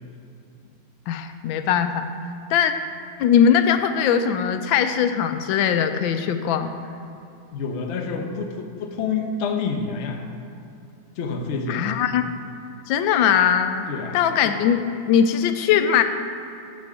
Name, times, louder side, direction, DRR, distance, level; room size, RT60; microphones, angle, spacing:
voice 1, 1.1-2.1 2.5-2.7 3.2-6.7 11.7-12.3 12.9-13.8 14.1-16.0, left 8 dB, 85° left, 9 dB, 1.3 m, -20 dB
voice 2, 7.5-10.3 11.1-11.9 13.9-14.2, left 5 dB, 55° left, 3 dB, 0.8 m, -28 dB
10.0 x 7.7 x 3.6 m, 2.8 s
omnidirectional pair, 2.0 m